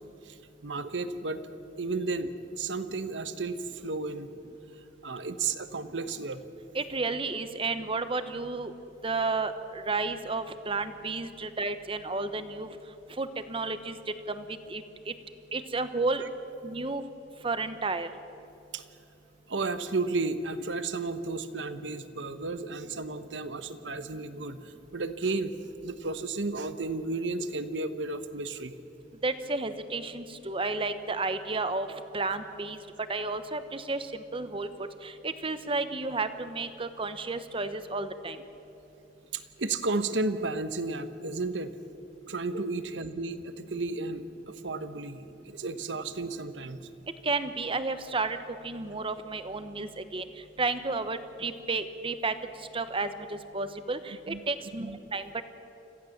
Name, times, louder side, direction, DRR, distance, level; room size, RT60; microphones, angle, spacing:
voice 1, 0.6-1.4 1.8-4.3 5.0-6.4 16.2-16.3 18.7-18.9 19.5-25.5 25.8-28.7 39.3-41.8 42.3-46.9 54.3-54.4 54.8-55.0, right 3 dB, 75° right, 11 dB, 1.1 m, -33 dB
voice 2, 6.7-8.7 9.0-12.8 13.2-14.0 14.3-15.1 15.5-16.2 16.6-17.0 17.4-18.1 29.2-32.8 33.1-34.7 35.0-38.4 47.2-48.4 48.6-50.2 50.6-52.3 52.7-55.4, right 3 dB, 30° right, 11 dB, 1.0 m, -32 dB
26.5 x 16.0 x 7.3 m, 2.8 s
head